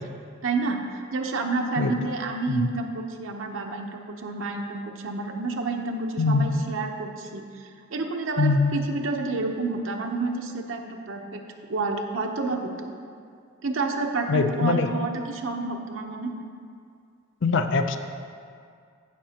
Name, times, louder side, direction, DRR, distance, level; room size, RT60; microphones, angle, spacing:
voice 1, 0.4-11.4 11.7-12.9 13.6-16.3, right 3 dB, 70° right, 3 dB, 0.8 m, -29 dB
voice 2, 6.2-6.5 8.4-8.8 14.3-14.9 17.4-18.0, left 4 dB, 65° left, 8 dB, 0.5 m, -22 dB
16.0 x 5.8 x 2.9 m, 2.3 s
head